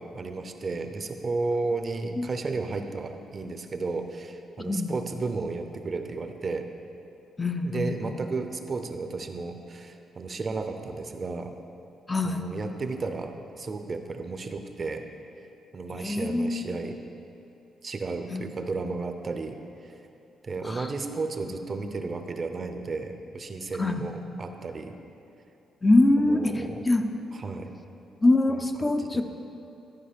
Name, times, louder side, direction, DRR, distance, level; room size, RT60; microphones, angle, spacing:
voice 1, 0.0-6.7 7.6-11.5 12.2-15.1 15.7-16.9 17.8-19.9 20.4-25.0 26.3-26.9 27.3-27.7 28.8-29.2, right 3 dB, 35° right, 7 dB, 0.6 m, -33 dB
voice 2, 4.6-4.9 7.4-8.1 12.1-12.5 16.0-16.8 18.3-18.5 20.6-20.9 23.8-24.0 25.8-27.2 28.2-29.2, left 2 dB, 20° left, 6 dB, 0.4 m, -24 dB
12.5 x 4.9 x 5.0 m, 2.7 s
cardioid pair, 115°, 0 cm